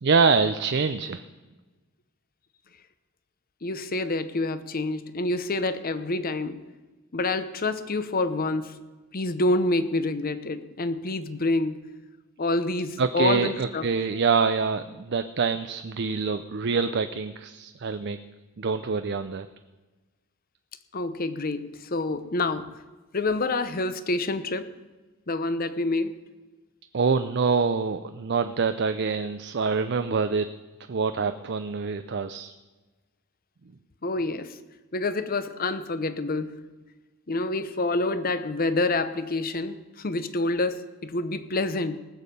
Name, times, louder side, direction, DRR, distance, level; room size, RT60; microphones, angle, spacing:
voice 1, 0.0-1.2 13.0-18.2 18.6-19.5 26.9-30.5 30.9-32.5, right 5 dB, 55° right, 0.5 m, -25 dB
voice 2, 3.6-6.6 7.1-8.8 9.1-11.8 12.4-13.9 20.9-22.7 23.1-24.7 25.3-26.2 34.0-34.6 34.9-36.6 37.3-42.0, left 2 dB, 45° left, 0.8 m, -27 dB
18.5 x 7.3 x 6.8 m
head